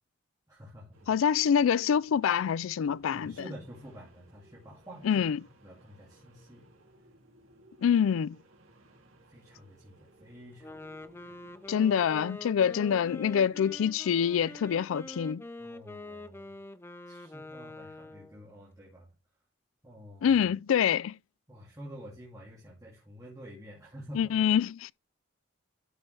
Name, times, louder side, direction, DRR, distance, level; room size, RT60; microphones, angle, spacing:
voice 1, 0.5-1.1 3.1-5.2 5.6-6.6 9.3-11.4 15.6-16.6 17.1-19.1 19.8-20.4 21.5-24.4, equal, 15° right, 2.3 m, -49 dB
sound 1, 0.9-15.2, right 1 dB, 85° right, 2.7 m, -60 dB
voice 2, 1.1-3.3 5.0-5.4 7.8-8.4 11.7-15.4 20.2-21.1 24.1-24.9, left 8 dB, 80° left, 0.3 m, -26 dB
Wind instrument woodwind instrument, 10.5-18.4, left 2 dB, 10° left, 0.5 m, -45 dB
11.5 x 5.5 x 3.3 m
head